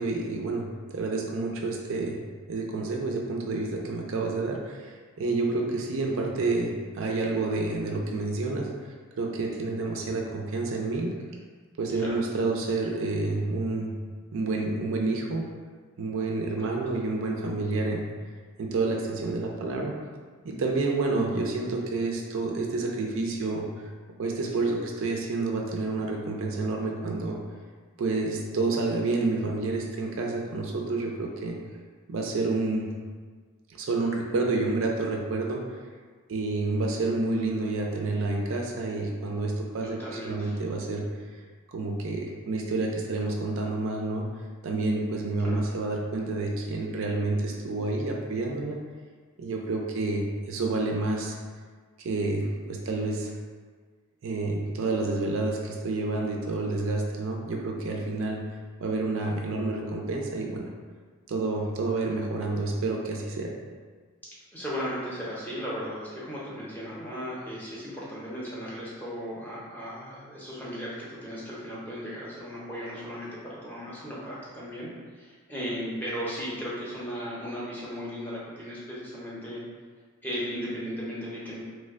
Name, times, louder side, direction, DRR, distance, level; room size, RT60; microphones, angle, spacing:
voice 1, 0.0-2.2 2.5-8.7 9.2-11.1 11.8-13.9 14.3-15.5 16.0-18.1 18.6-19.9 20.4-23.7 24.2-27.4 28.0-31.6 32.1-32.9 33.7-35.8 36.3-41.1 41.7-44.3 44.6-48.8 49.4-51.4 52.0-53.3 54.2-58.4 58.8-60.7 61.3-63.5, right 3 dB, 60° right, 0 dB, 0.4 m, -29 dB
voice 2, 39.8-40.6 45.4-45.6 64.5-79.6 80.2-81.6, equal, 10° left, -7 dB, 0.6 m, -36 dB
3.0 x 2.1 x 3.4 m, 1.5 s
head